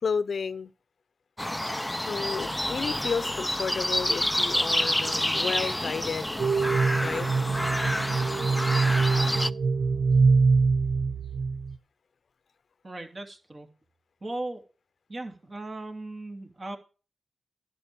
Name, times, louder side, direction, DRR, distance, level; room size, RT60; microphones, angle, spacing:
voice 1, 0.0-0.7 2.1-6.4 7.0-7.3, left 5 dB, 70° left, 0.7 m, -32 dB
sound 1, 1.4-9.5, left 1 dB, 10° left, 0.4 m, -28 dB
sound 2, 6.4-11.8, right 4 dB, 70° right, 0.5 m, -24 dB
voice 2, 12.8-13.7 14.2-14.6 15.1-16.8, right 2 dB, 45° right, 2.6 m, -37 dB
11.0 x 6.6 x 6.8 m
cardioid pair, 55°, 0 cm